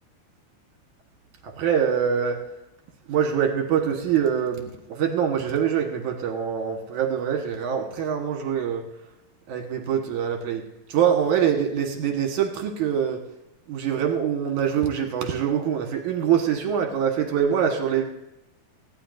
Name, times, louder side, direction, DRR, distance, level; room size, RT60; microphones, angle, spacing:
voice 1, 1.4-2.4 3.1-8.8 9.5-10.6 10.9-13.2 13.7-18.1, right 8 dB, 70° right, 4 dB, 2.8 m, -24 dB
20.0 x 15.0 x 2.6 m, 0.89 s
omnidirectional pair, 3.9 m